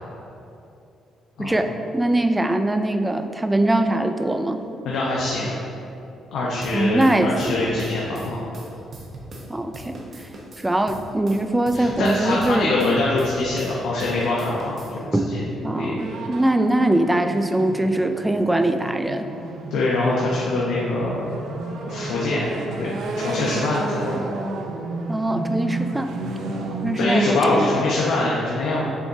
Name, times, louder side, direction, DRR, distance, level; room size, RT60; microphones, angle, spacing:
voice 1, 1.4-4.6 6.7-7.7 9.5-10.3 10.6-12.8 15.1-15.3 15.6-19.3 25.1-26.1 26.8-27.7, right 1 dB, 10° right, 7 dB, 0.3 m, -22 dB
voice 2, 4.8-5.5 6.3-8.4 11.7-16.0 19.7-21.3 21.9-22.5 22.8-24.2 26.4-26.7 27.0-28.9, left 2 dB, 85° left, -5 dB, 1.0 m, -24 dB
sound 1, 6.6-9.5 9.7-13.7 14.0-14.9, right 2 dB, 40° right, 1.0 m, -39 dB
sound 2, 16.0-27.2, right 3 dB, 70° right, 0.7 m, -32 dB
7.3 x 6.7 x 2.8 m, 2.8 s
cardioid pair, 165°, 0 cm